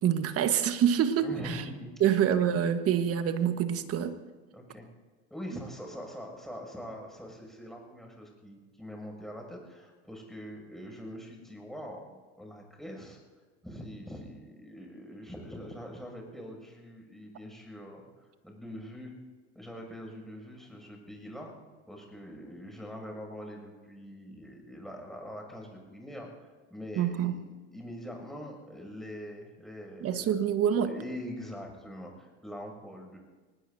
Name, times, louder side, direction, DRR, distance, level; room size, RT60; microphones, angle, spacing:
voice 1, 0.0-1.6 2.0-4.2 27.0-27.3 30.0-30.9, right 9 dB, 45° right, 9 dB, 1.4 m, -26 dB
voice 2, 1.2-2.2 4.5-4.9 5.3-13.2 13.6-18.0 18.4-19.1 19.5-21.5 21.9-27.4 27.7-30.4 30.8-33.2, equal, ahead, 0 dB, 6.8 m, -43 dB
24.0 x 20.0 x 2.7 m, 1.3 s
hypercardioid pair, 90°, 34 cm